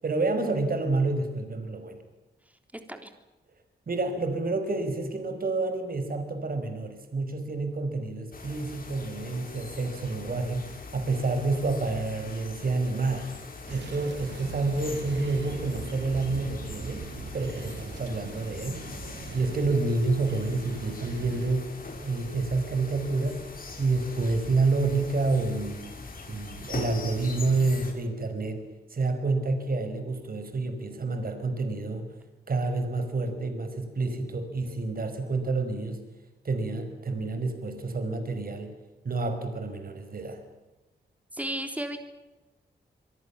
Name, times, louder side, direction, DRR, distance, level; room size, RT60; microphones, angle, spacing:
voice 1, 0.0-2.0 3.9-13.3 13.7-17.1 17.3-18.8 19.3-21.7 22.0-23.4 23.8-25.8 26.3-32.1 32.5-36.0 36.4-38.7 39.0-40.4, right 3 dB, 55° right, 7 dB, 5.6 m, -29 dB
sound 1, 8.3-27.9, left 3 dB, 55° left, 6.0 m, -42 dB
sound 2, 13.7-21.5, right 5 dB, 80° right, 2.9 m, -41 dB
voice 2, 41.3-42.0, right 1 dB, 10° right, 7 dB, 3.7 m, -33 dB
27.5 x 23.5 x 7.3 m, 1.1 s
wide cardioid pair, 95°, 18 cm